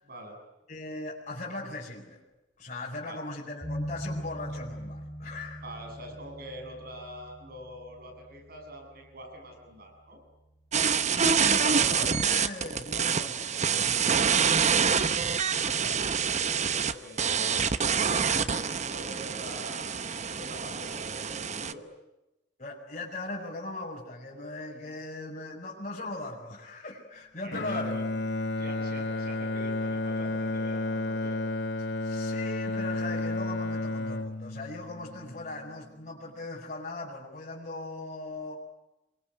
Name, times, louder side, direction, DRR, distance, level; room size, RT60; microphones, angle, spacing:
voice 1, 0.1-0.4 3.1-3.2 5.6-10.2 15.6-19.9 20.3-21.9 27.4-28.0 28.6-31.4, equal, 55° right, 3 dB, 7.5 m, -45 dB
voice 2, 0.7-2.2 2.6-5.6 11.1-15.3 15.8-16.0 18.3-18.6 22.6-28.2 32.0-38.5, left 2 dB, 40° left, -4 dB, 5.7 m, -39 dB
sound 1, 3.6-10.7, equal, 15° left, 1.8 m, -42 dB
sound 2, 10.7-21.7, right 6 dB, 40° right, 1.0 m, -26 dB
Bowed string instrument, 27.5-35.7, left 2 dB, 70° left, 0.9 m, -32 dB
27.5 x 23.0 x 9.4 m, 0.95 s
head